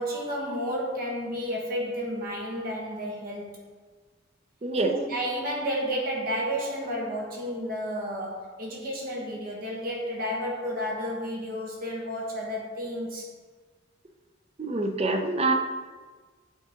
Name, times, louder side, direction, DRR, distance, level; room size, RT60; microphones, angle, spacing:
voice 1, 0.0-3.6 4.7-13.3, equal, 50° right, -2 dB, 1.3 m, -31 dB
voice 2, 4.6-5.0 14.6-15.5, right 2 dB, 30° right, 5 dB, 0.6 m, -25 dB
8.9 x 3.9 x 3.8 m, 1.4 s
head